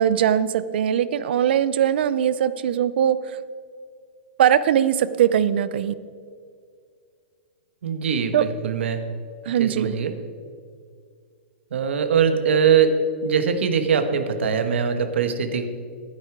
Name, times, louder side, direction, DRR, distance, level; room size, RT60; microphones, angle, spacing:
voice 1, 0.0-3.4 4.4-5.9 8.3-8.4 9.5-9.9, right 9 dB, 60° right, 16 dB, 0.5 m, -20 dB
voice 2, 7.8-9.0 9.6-10.1 11.7-13.0 13.2-15.7, right 7 dB, 85° right, 8 dB, 1.2 m, -22 dB
12.0 x 9.8 x 4.6 m, 2.1 s
hypercardioid pair, 165°, 6 cm